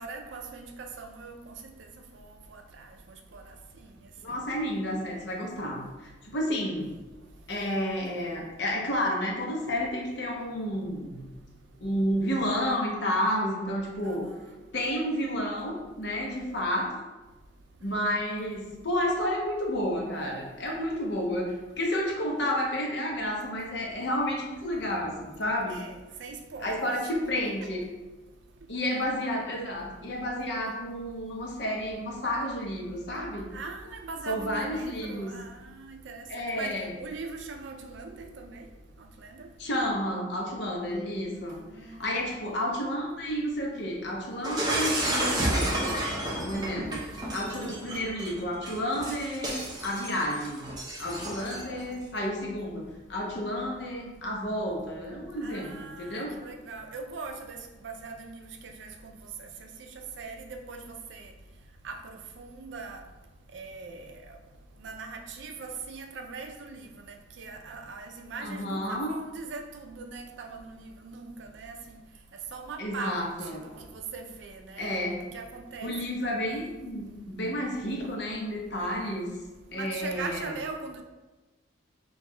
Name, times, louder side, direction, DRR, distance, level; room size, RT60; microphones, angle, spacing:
voice 1, 0.0-1.7 2.1-3.9 14.0-14.5 25.7-26.9 27.4-27.7 33.5-36.3 36.5-38.7 39.0-39.5 41.5-42.2 47.5-47.8 51.2-51.5 55.4-57.6 57.8-59.1 59.4-60.8 61.1-61.3 61.8-63.0 63.5-64.4 64.8-72.0 72.5-75.9 76.2-76.6 79.7-81.0, right 4 dB, 65° right, 4 dB, 0.4 m, -41 dB
voice 2, 4.2-7.0 7.5-11.2 11.8-14.3 14.7-16.9 17.8-25.8 26.6-27.8 28.7-33.5 34.3-35.3 36.3-36.9 39.6-46.1 46.4-47.1 47.3-50.7 51.0-56.3 68.4-69.1 72.8-73.6 74.8-75.2 75.8-79.3 79.7-80.5, equal, 60° left, -1 dB, 0.7 m, -31 dB
Shatter, 44.4-51.8, right 1 dB, 20° right, 0.6 m, -31 dB
5.8 x 2.3 x 2.2 m, 1.2 s
head